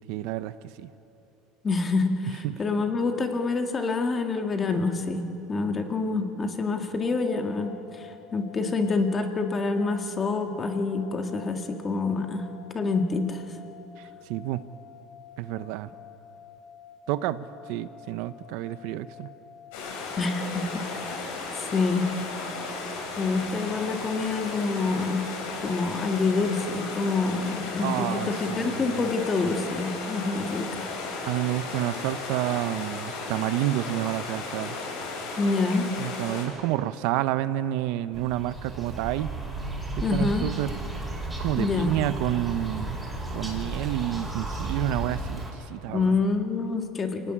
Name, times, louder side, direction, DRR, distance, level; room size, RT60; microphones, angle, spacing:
voice 1, 0.1-0.9 2.4-2.5 14.0-14.6 15.4-15.9 17.1-19.3 27.8-29.1 31.2-34.8 36.0-39.3 40.0-40.8 41.4-43.0 43.3-46.2, right 14 dB, 65° right, 13 dB, 0.8 m, -29 dB
voice 2, 1.6-12.4 12.7-13.4 20.2-20.8 21.6-22.1 23.2-25.2 25.6-30.9 35.4-35.9 40.0-40.5 41.6-41.9 45.9-47.3, left 3 dB, 20° left, 5 dB, 1.8 m, -27 dB
sound 1, 7.1-20.5, left 8 dB, 45° left, 4.7 m, -49 dB
sound 2, 19.7-36.4, left 3 dB, 85° left, 7.6 m, -35 dB
sound 3, 38.1-45.5, right 2 dB, 5° right, 4.5 m, -34 dB
26.5 x 17.0 x 10.0 m, 3.0 s
cardioid pair, 160°, 0 cm